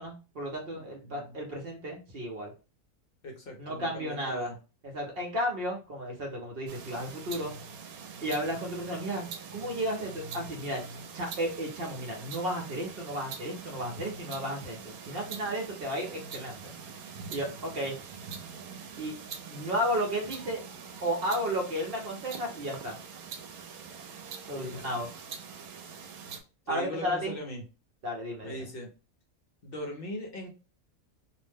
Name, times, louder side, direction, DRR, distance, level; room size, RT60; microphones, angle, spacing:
voice 1, 0.0-2.5 3.6-4.5 4.8-7.5 8.2-10.8 11.1-16.6 17.3-18.0 19.0-19.2 19.4-20.6 21.0-23.0 24.5-25.1 26.7-27.4 28.0-28.6, equal, 50° right, 1 dB, 0.8 m, -33 dB
voice 2, 0.7-1.5 3.2-4.6 24.5-25.0 26.7-27.6 28.4-28.9 29.6-30.5, left 1 dB, 50° left, 2 dB, 0.7 m, -40 dB
sound 1, 6.7-26.4, right 6 dB, 75° right, 1.0 m, -44 dB
2.5 x 2.1 x 3.3 m, 0.32 s
omnidirectional pair, 1.6 m